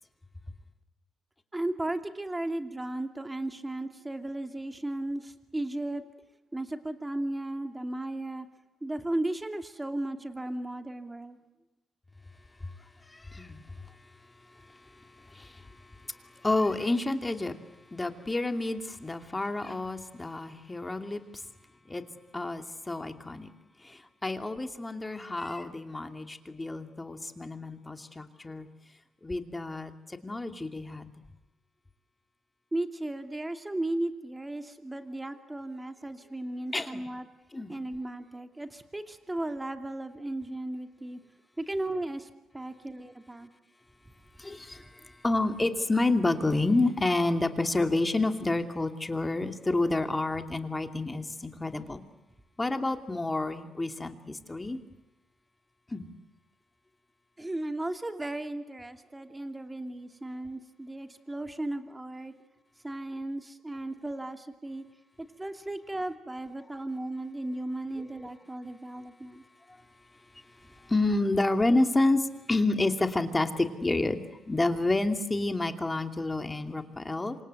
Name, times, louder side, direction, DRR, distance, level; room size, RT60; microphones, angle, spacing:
voice 1, 1.5-6.0 6.5-8.5 8.8-11.4 32.7-37.3 37.7-41.2 41.6-43.5 57.4-62.3 62.8-64.8 65.2-69.4, right 1 dB, 15° right, 7 dB, 2.6 m, -35 dB
voice 2, 13.1-13.6 15.3-15.7 16.4-17.6 17.9-21.2 21.9-22.0 22.3-23.5 23.8-28.7 29.2-31.1 36.7-37.1 37.5-37.7 44.4-52.0 52.6-54.8 55.9-56.1 68.0-68.1 70.8-77.4, left 2 dB, 15° left, 6 dB, 2.6 m, -29 dB
27.0 x 26.0 x 8.2 m, 1.0 s
cardioid pair, 90°, 0 cm